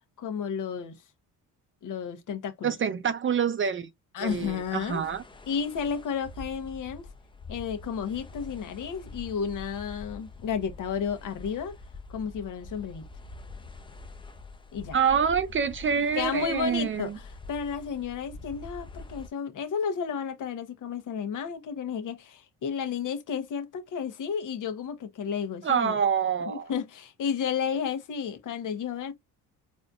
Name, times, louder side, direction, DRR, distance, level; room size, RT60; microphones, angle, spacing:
voice 1, 0.2-1.0 1.8-2.8 4.1-5.1 5.5-7.1 7.5-11.7 12.1-13.1 14.7-15.0 16.1-26.0 26.5-29.1, left 7 dB, 55° left, 1.0 m, -32 dB
voice 2, 2.6-3.9 4.2-5.2 14.9-17.2 25.6-26.7, right 7 dB, 35° right, 0.5 m, -26 dB
sound 1, 4.2-19.3, left 3 dB, 15° left, 0.5 m, -45 dB
4.1 x 2.6 x 2.4 m
cardioid pair, 90°, 36 cm